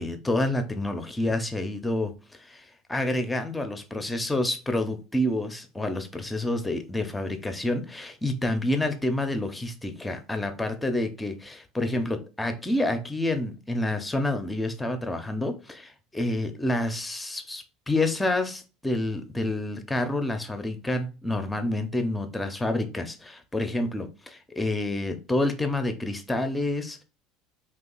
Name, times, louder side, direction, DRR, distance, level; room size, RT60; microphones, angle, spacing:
voice 1, 0.0-27.0, left 1 dB, 10° left, 0.7 m, -28 dB
2.8 x 2.4 x 3.9 m
hypercardioid pair, 75°, 0 cm